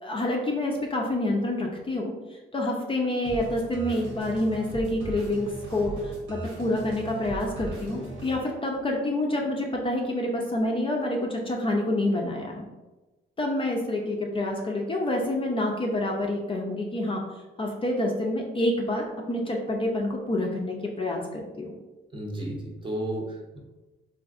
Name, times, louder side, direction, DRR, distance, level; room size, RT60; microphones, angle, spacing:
voice 1, 0.0-12.7 13.4-17.2 17.6-21.7, left 1 dB, 25° left, 0 dB, 0.5 m, -28 dB
sound 1, 3.2-8.3, right 2 dB, 75° right, 1.1 m, -38 dB
voice 2, 22.1-23.6, right 1 dB, 25° right, -1 dB, 0.7 m, -33 dB
3.6 x 2.5 x 2.4 m, 1.1 s
cardioid pair, 90°, 20 cm